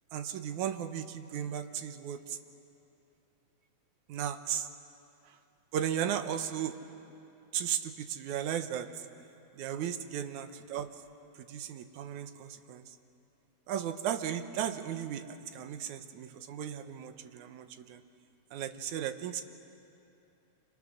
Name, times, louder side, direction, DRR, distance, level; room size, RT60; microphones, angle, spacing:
voice 1, 0.1-2.4 4.1-4.7 5.7-6.8 7.5-8.9 9.6-10.9 11.5-12.8 13.7-18.0 18.5-19.4, right 9 dB, 85° right, 9 dB, 2.4 m, -35 dB
30.0 x 26.5 x 6.5 m, 2.8 s
omnidirectional pair, 3.4 m